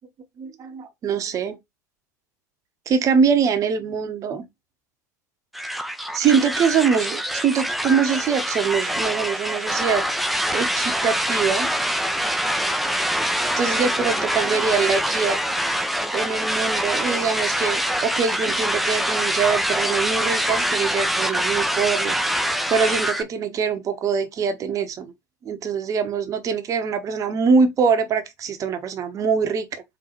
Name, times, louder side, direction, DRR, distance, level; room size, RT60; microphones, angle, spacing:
voice 1, 0.4-1.6 2.9-4.5 6.1-10.0 10.5-11.7 13.6-15.4 16.1-22.2 22.7-25.1 25.4-29.8, right 6 dB, 35° right, 0.9 m, -23 dB
sound 1, 5.5-23.2, equal, ahead, 0.5 m, -24 dB
3.9 x 3.7 x 3.0 m
figure-of-eight pair, 80°, 10 cm